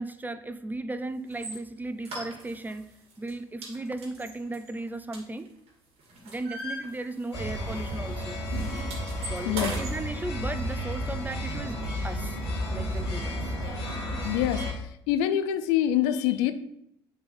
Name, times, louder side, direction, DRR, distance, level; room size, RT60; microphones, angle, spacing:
voice 1, 0.0-2.9 3.2-5.5 6.2-8.4 9.3-12.4 12.7-13.5, right 2 dB, 15° right, 12 dB, 0.5 m, -36 dB
sound 1, 1.3-1.6 2.0-2.8 3.1-3.3 3.6-5.7 6.0-7.5 7.7-7.9 8.2-10.0, right 1 dB, 50° right, 2.0 m, -39 dB
sound 2, 7.3-14.7, equal, 85° left, 1.9 m, -32 dB
voice 2, 14.2-14.6 15.1-16.5, left 11 dB, 65° left, 10 dB, 0.5 m, -25 dB
7.7 x 3.9 x 4.3 m, 0.73 s
figure-of-eight pair, 55°, 13 cm